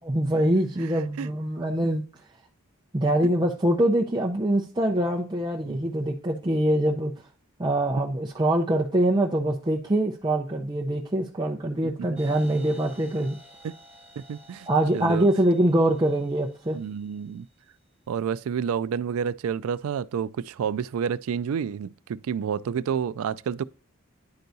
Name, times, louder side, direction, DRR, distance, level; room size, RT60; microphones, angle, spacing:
voice 1, 0.1-2.0 2.9-7.1 7.6-13.4 14.7-16.8, right 1 dB, 20° right, 0.5 m, -24 dB
sound 1, 12.1-17.7, equal, 5° right, 3.1 m, -53 dB
voice 2, 14.2-14.7 14.9-15.3 16.7-17.5 18.1-23.6, right 7 dB, 80° right, 0.3 m, -29 dB
10.5 x 4.6 x 2.6 m
head